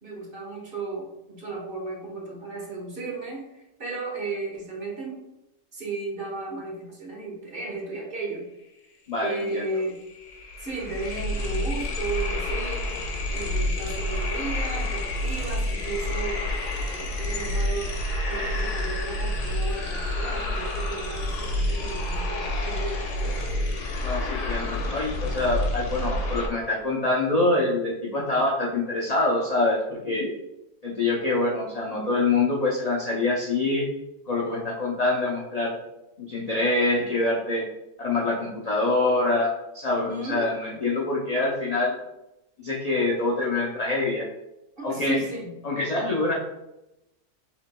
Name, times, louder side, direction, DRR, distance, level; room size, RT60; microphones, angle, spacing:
voice 1, 0.0-5.2 5.7-8.5 9.2-10.0 10.6-13.0 13.3-16.5 16.7-17.9 18.2-23.4 39.9-40.5 44.8-45.5, right 3 dB, 40° right, -2 dB, 1.2 m, -34 dB
voice 2, 9.1-9.7 24.0-30.3 30.8-33.9 34.3-35.8 36.2-37.6 38.0-42.0 42.6-44.3 44.8-45.2 45.6-46.3, left 2 dB, 55° left, -3 dB, 0.4 m, -25 dB
sound 1, 9.5-9.6 9.8-26.5, left 1 dB, 85° left, 1.4 m, -29 dB
5.7 x 3.8 x 2.2 m, 0.91 s
omnidirectional pair, 1.6 m